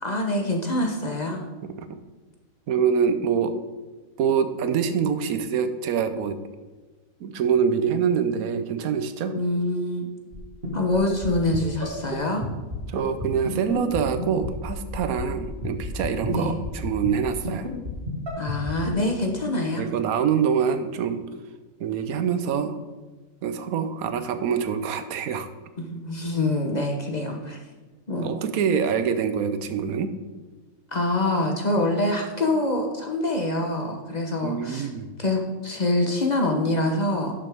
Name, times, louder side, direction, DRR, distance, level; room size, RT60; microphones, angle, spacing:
voice 1, 0.0-1.4 9.3-10.0 10.7-12.4 16.3-16.6 18.4-19.9 25.8-27.6 28.1-28.3 30.9-34.9 35.2-37.3, left 1 dB, 35° left, 2 dB, 0.9 m, -25 dB
voice 2, 2.7-3.6 4.2-6.4 7.2-9.3 12.9-17.7 19.7-21.2 21.8-22.8 23.4-25.5 28.2-30.1 34.4-35.1, right 7 dB, 80° right, 10 dB, 1.2 m, -25 dB
sound 1, 10.3-10.4 10.6-11.0 11.2-11.3 11.5-11.6 11.8-11.9 12.1-12.2 12.4-12.5 12.7-18.9, right 1 dB, 40° right, 2.1 m, -31 dB
11.5 x 6.7 x 3.5 m, 1.3 s
omnidirectional pair, 1.5 m